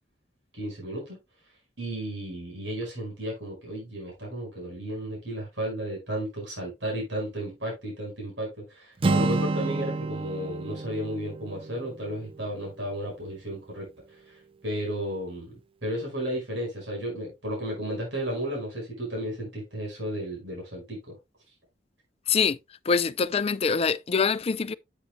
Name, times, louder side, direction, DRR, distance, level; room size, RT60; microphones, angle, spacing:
voice 1, 0.5-1.2 1.8-15.6 15.8-21.1, equal, 80° right, 5.4 m, -33 dB
Acoustic guitar, 9.0-12.9, right 3 dB, 30° right, 0.3 m, -30 dB
voice 2, 22.3-22.6 22.9-24.7, left 5 dB, 35° left, 0.4 m, -24 dB
9.9 x 8.3 x 2.3 m
head